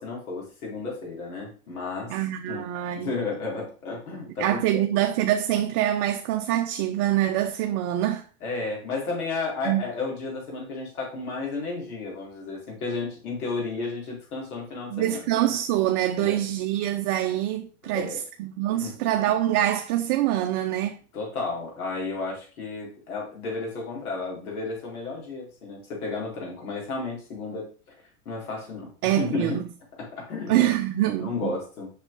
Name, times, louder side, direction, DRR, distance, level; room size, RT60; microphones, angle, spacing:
voice 1, 0.0-2.2 2.5-2.7 2.9-4.8 8.4-15.5 16.2-16.4 17.8-18.2 18.7-19.0 21.1-27.9 28.2-29.6 30.0-30.7 31.2-31.9, left 3 dB, 90° left, 4.4 m, -33 dB
voice 2, 2.1-3.1 4.4-8.2 9.6-9.8 14.9-21.0 29.0-29.6 30.5-31.5, right 13 dB, 45° right, 0.8 m, -25 dB
7.9 x 6.5 x 3.9 m
supercardioid pair, 135°, 43 cm